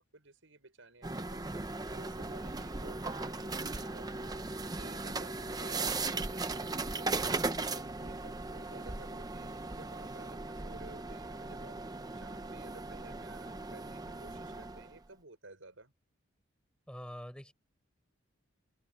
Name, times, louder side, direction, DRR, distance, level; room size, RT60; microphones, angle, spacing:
voice 1, 0.0-1.6 1.9-4.3 4.7-7.2 7.7-11.8 12.1-15.9, right 2 dB, 80° right, 5.7 m, -54 dB
sound 1, 1.0-15.0, right 3 dB, 20° right, 0.8 m, -38 dB
voice 2, 16.9-17.5, equal, 5° left, 4.9 m, -45 dB
open air
head